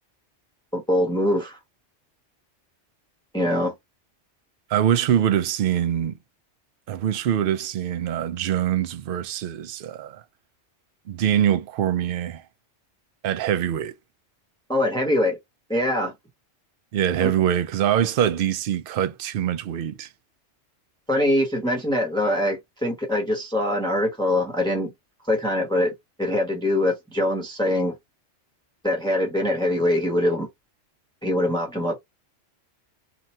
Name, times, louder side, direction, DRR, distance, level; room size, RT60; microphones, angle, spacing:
voice 1, 0.7-1.6 3.3-3.7 14.7-15.4 15.7-16.1 17.2-17.3 21.1-24.9 25.3-25.9 26.2-27.9 28.8-30.5 31.2-32.0, left 1 dB, 5° left, 0.9 m, -23 dB
voice 2, 4.7-6.2 6.9-10.2 11.1-12.4 13.2-13.9 16.9-20.1, right 10 dB, 60° right, 0.6 m, -23 dB
2.9 x 2.5 x 4.3 m
omnidirectional pair, 1.2 m